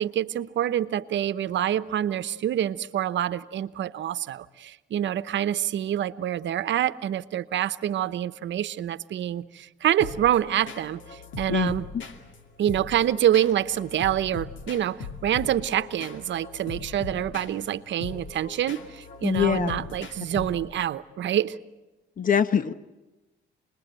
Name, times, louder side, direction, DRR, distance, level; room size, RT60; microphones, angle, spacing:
voice 1, 0.0-11.9 12.6-21.6, right 11 dB, 65° right, 14 dB, 1.0 m, -26 dB
sound 1, 10.0-20.9, left 4 dB, 75° left, 2.6 m, -40 dB
voice 2, 19.2-19.9 20.3-20.4 22.2-22.7, left 8 dB, 45° left, 13 dB, 1.1 m, -24 dB
27.5 x 21.0 x 9.1 m, 1.1 s
cardioid pair, 90°, 20 cm